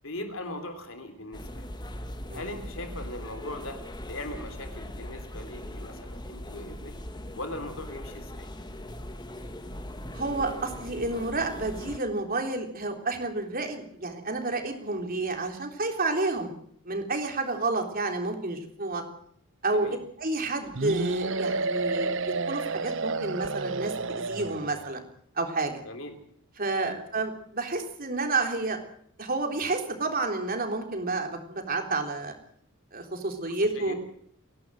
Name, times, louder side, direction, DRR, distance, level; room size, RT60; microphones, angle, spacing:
voice 1, 0.0-1.7 2.3-6.9 7.3-8.5 19.7-20.0 25.8-26.2 26.7-27.0 33.5-33.9, left 1 dB, 65° left, 7 dB, 3.4 m, -40 dB
sound 1, 1.3-12.0, left 1 dB, 20° left, 1.7 m, -40 dB
voice 2, 10.1-16.5 16.8-19.0 19.6-25.0 25.4-25.8 26.6-28.8 29.2-32.3 32.9-33.9, right 3 dB, 40° right, 4 dB, 3.7 m, -30 dB
sound 2, 20.7-24.9, right 3 dB, 60° right, 0.9 m, -30 dB
28.5 x 11.5 x 7.8 m, 0.65 s
head